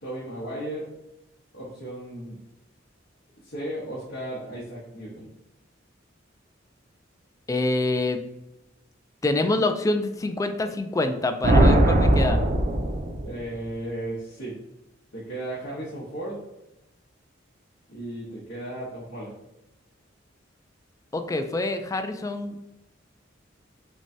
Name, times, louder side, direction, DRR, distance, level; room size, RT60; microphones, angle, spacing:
voice 1, 0.0-0.9 1.5-2.4 3.4-5.3 13.2-14.6 15.1-16.4 17.9-19.4, right 1 dB, 70° left, -7 dB, 1.1 m, -35 dB
voice 2, 7.5-8.2 9.2-12.4 21.1-22.6, left 2 dB, 15° left, 7 dB, 0.3 m, -26 dB
sound 1, 11.4-13.5, right 1 dB, 45° right, 0.5 m, -19 dB
6.1 x 2.2 x 2.7 m, 0.91 s
head